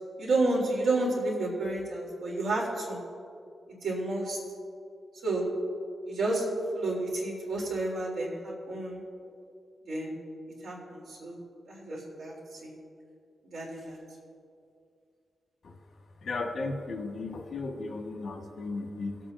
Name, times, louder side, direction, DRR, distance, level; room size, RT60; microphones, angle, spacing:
voice 1, 0.2-3.0 3.8-4.4 5.2-5.5 6.0-9.0 9.9-10.1 10.6-11.4 11.7-12.7 13.5-14.0, right 2 dB, 85° right, -3 dB, 3.2 m, -30 dB
voice 2, 16.2-19.2, left 3 dB, 60° left, 2 dB, 1.6 m, -35 dB
23.5 x 8.5 x 2.7 m, 2.4 s
wide cardioid pair, 125°, 0 cm